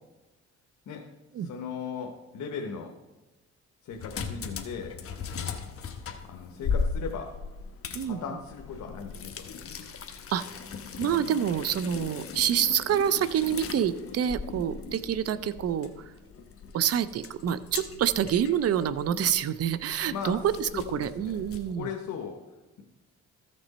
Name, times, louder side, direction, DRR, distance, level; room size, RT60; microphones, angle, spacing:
voice 1, 1.4-2.9 3.8-5.0 6.2-7.3 8.0-9.5 20.1-20.4 20.7-21.4 21.7-22.4, left 6 dB, 75° left, 2 dB, 1.1 m, -37 dB
sound 1, 3.9-21.7, left 5 dB, 50° left, 1.1 m, -38 dB
voice 2, 11.0-16.1 16.7-21.9, right 9 dB, 55° right, 15 dB, 0.6 m, -27 dB
14.0 x 6.1 x 4.2 m, 1.1 s
cardioid pair, 90°, 30 cm